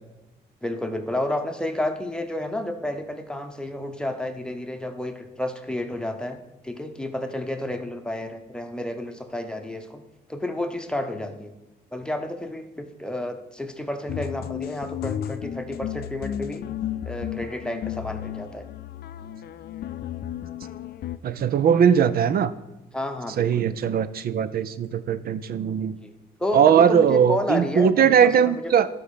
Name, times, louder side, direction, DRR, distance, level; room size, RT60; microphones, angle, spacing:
voice 1, 0.6-6.4 6.6-10.0 10.3-11.5 11.9-16.7 17.1-18.7 22.9-23.8 26.0-26.1 26.4-28.7, left 1 dB, 5° left, 6 dB, 1.0 m, -31 dB
sound 1, 14.1-21.2, left 11 dB, 65° left, 0.5 m, -33 dB
voice 2, 21.2-22.5 23.4-26.0 26.5-28.9, right 8 dB, 60° right, 15 dB, 0.5 m, -20 dB
12.5 x 4.3 x 5.0 m, 0.97 s
cardioid pair, 85°, 18 cm